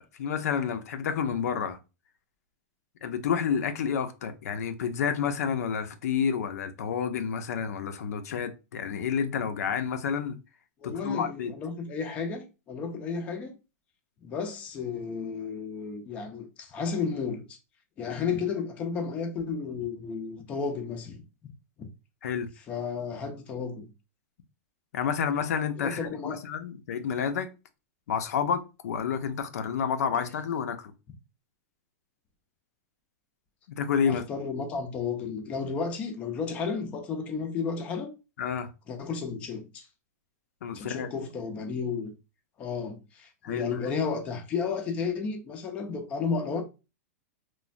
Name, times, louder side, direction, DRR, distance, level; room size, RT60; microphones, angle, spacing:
voice 1, 0.0-1.8 3.0-10.4 10.8-11.5 22.2-22.5 24.9-27.5 28.1-30.9 33.7-34.2 38.4-38.7 40.6-41.1 43.4-43.9, left 7 dB, 75° left, 0.4 m, -29 dB
voice 2, 10.8-13.6 14.2-17.6 18.0-21.2 21.8-21.9 22.6-23.9 25.8-26.4 30.1-30.3 34.1-38.1 38.9-39.9 40.7-42.1 42.6-46.6, left 5 dB, 15° left, 0.3 m, -33 dB
3.1 x 2.1 x 2.4 m
supercardioid pair, 170°, 8 cm